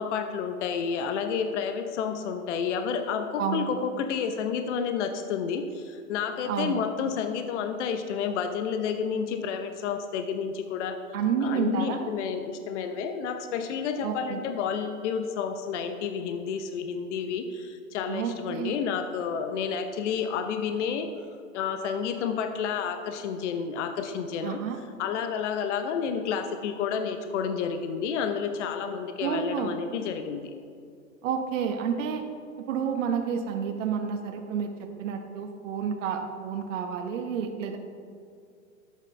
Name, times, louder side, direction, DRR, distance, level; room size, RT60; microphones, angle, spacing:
voice 1, 0.0-11.0 11.4-21.1 21.5-24.6 25.0-30.5, left 6 dB, 55° left, 7 dB, 0.8 m, -30 dB
voice 2, 6.5-6.8 11.1-12.1 14.0-14.4 18.1-18.8 24.4-24.8 29.2-29.7 31.2-32.2 32.6-34.7 35.0-37.8, right 7 dB, 60° right, 5 dB, 1.1 m, -30 dB
11.5 x 8.3 x 3.3 m, 2.4 s
hypercardioid pair, 115°, 42 cm